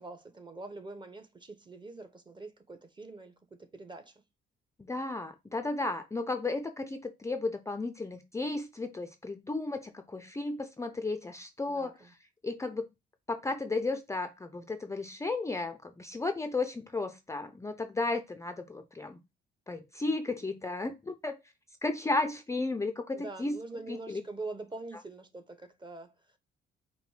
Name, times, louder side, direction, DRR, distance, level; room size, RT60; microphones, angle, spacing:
voice 1, 0.0-3.3 3.6-4.2 11.7-12.1 23.1-26.1, right 3 dB, 25° right, 0.9 m, -44 dB
voice 2, 4.8-12.1 12.4-12.9 13.3-19.2 19.7-21.4 21.8-23.6 23.9-24.2, left 3 dB, 15° left, 0.5 m, -34 dB
5.0 x 2.1 x 4.9 m
cardioid pair, 90°, 20 cm